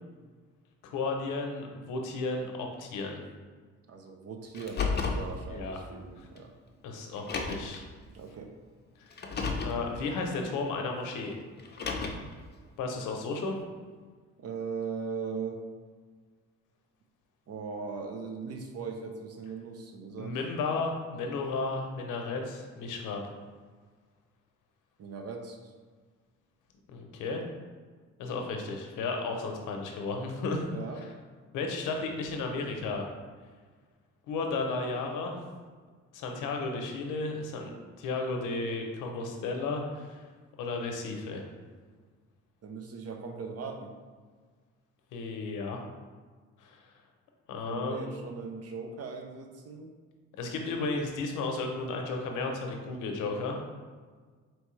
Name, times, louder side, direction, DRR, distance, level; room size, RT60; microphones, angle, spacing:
voice 1, 0.8-3.2 5.5-5.8 6.2-6.3 6.8-7.9 9.0-9.4 9.6-11.4 12.8-13.6 20.2-23.2 26.9-27.4 28.2-30.6 31.5-33.1 34.3-35.5 36.1-40.2 40.6-41.4 45.1-45.8 46.6-46.8 47.5-48.2 50.4-53.6, left 3 dB, 90° left, 2 dB, 0.7 m, -33 dB
voice 2, 3.9-6.5 8.1-8.5 14.4-15.6 17.5-20.4 25.0-25.6 29.4-29.5 30.7-31.0 42.6-43.9 47.7-49.9, right 5 dB, 55° right, 4 dB, 0.7 m, -39 dB
Car, 4.5-5.3 6.4-6.5 7.2-7.8 9.1-9.8 11.6-12.3, left 4 dB, 35° left, 0.6 m, -32 dB
4.5 x 3.1 x 3.1 m, 1.5 s
cardioid pair, 90°, 30 cm